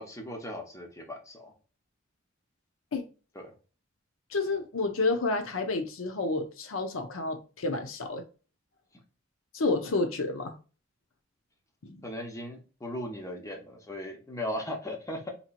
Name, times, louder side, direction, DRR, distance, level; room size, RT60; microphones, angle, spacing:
voice 1, 0.0-1.5 3.3-3.5 12.0-15.3, left 1 dB, 15° left, 0.8 m, -37 dB
voice 2, 4.3-8.2 9.5-10.6 11.8-12.0, left 3 dB, 85° left, 0.7 m, -30 dB
4.3 x 2.9 x 2.5 m
head